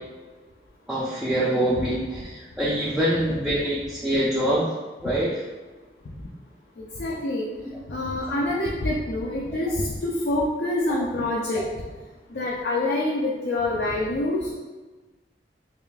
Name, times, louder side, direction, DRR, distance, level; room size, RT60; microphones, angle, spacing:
voice 1, 0.9-4.7 5.0-5.4 10.9-11.0, right 1 dB, 5° right, -8 dB, 0.4 m, -25 dB
voice 2, 6.8-7.5 7.9-11.6 12.3-14.5, left 2 dB, 70° left, -4 dB, 0.5 m, -26 dB
5.3 x 2.4 x 2.4 m, 1.3 s
head